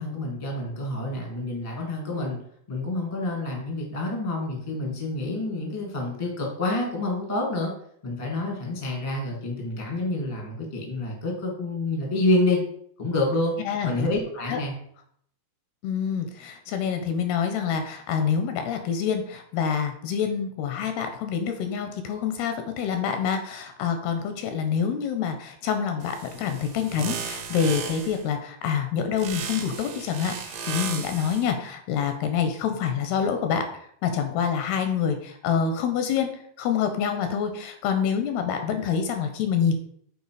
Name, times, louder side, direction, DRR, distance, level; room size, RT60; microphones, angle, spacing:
voice 1, 0.0-2.4 2.7-7.7 8.0-12.6 13.0-13.6 13.8-14.7, left 2 dB, 25° left, 0 dB, 0.7 m, -28 dB
voice 2, 13.7-14.1 14.5-14.6 15.8-33.7 34.0-36.3 36.6-39.7, left 7 dB, 80° left, 7 dB, 2.5 m, -26 dB
sound 1, 26.0-28.2 29.2-31.5, right 6 dB, 65° right, 2.4 m, -35 dB
8.1 x 4.5 x 4.8 m, 0.65 s
omnidirectional pair, 5.0 m